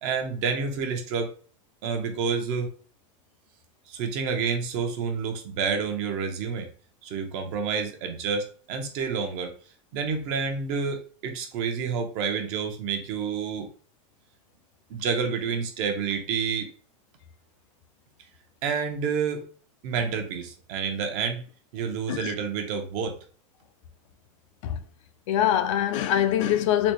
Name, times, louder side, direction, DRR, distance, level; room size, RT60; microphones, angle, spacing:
voice 1, 0.0-1.3 1.8-2.7 3.9-6.7 7.0-9.5 9.9-13.7 14.9-16.7 18.6-19.5 19.8-21.4 21.7-23.2, right 5 dB, 50° right, 0.8 m, -29 dB
voice 2, 25.3-26.9, left 11 dB, 65° left, 0.5 m, -24 dB
4.0 x 2.2 x 3.0 m
supercardioid pair, 145°, 17 cm